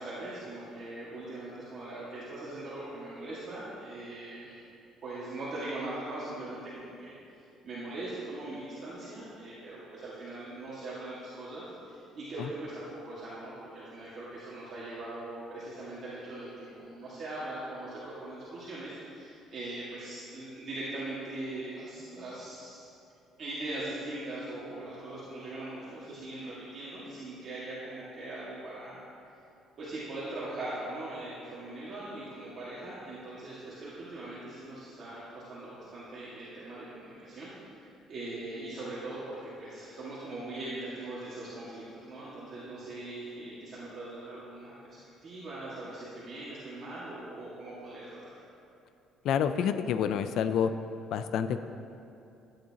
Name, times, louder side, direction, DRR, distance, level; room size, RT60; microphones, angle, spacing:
voice 1, 0.0-4.6 5.0-7.1 7.6-22.9 23.4-29.0 29.8-48.3, right 2 dB, 40° right, -9 dB, 1.8 m, -41 dB
voice 2, 49.2-50.7 51.1-51.6, left 8 dB, 60° left, 10 dB, 0.4 m, -28 dB
14.0 x 9.5 x 2.9 m, 2.7 s
cardioid pair, 150°, 0 cm